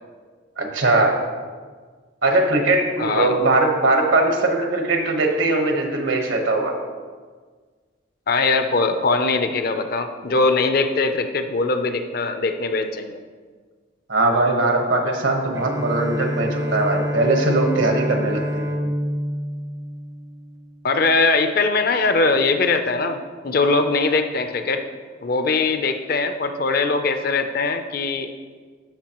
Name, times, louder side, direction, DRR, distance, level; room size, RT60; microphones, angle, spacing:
voice 1, 0.6-1.2 2.2-6.8 14.1-18.7, right 2 dB, 80° right, 2 dB, 1.2 m, -20 dB
voice 2, 3.0-3.4 8.3-13.2 20.8-24.8 25.2-28.3, left 3 dB, 50° left, 8 dB, 0.5 m, -21 dB
Bowed string instrument, 15.5-20.8, equal, 15° right, 0.4 m, -27 dB
13.5 x 5.2 x 3.0 m, 1.5 s
head